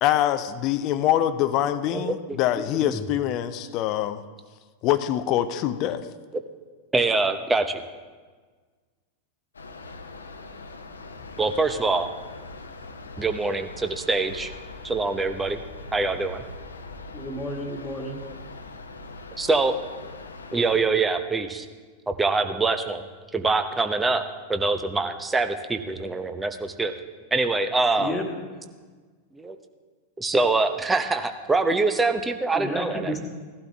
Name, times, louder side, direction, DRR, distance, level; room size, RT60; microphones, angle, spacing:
voice 1, 0.0-4.2 4.8-6.1, left 12 dB, 40° left, 13 dB, 0.6 m, -24 dB
voice 2, 6.9-7.8 11.4-12.1 13.2-14.5 14.8-15.6 15.9-16.4 18.2-18.3 19.4-19.7 20.5-21.7 22.1-23.0 23.3-24.2 24.5-26.9 27.3-28.1 29.3-29.6 30.2-33.1, right 3 dB, 10° right, 7 dB, 0.9 m, -24 dB
sound 1, 9.5-20.8, left 3 dB, 75° left, 0.9 m, -41 dB
voice 3, 17.1-18.2 28.0-28.3 32.5-33.2, left 1 dB, 15° left, 2 dB, 1.9 m, -31 dB
17.0 x 12.0 x 3.5 m, 1.4 s
figure-of-eight pair, 90°, 0 cm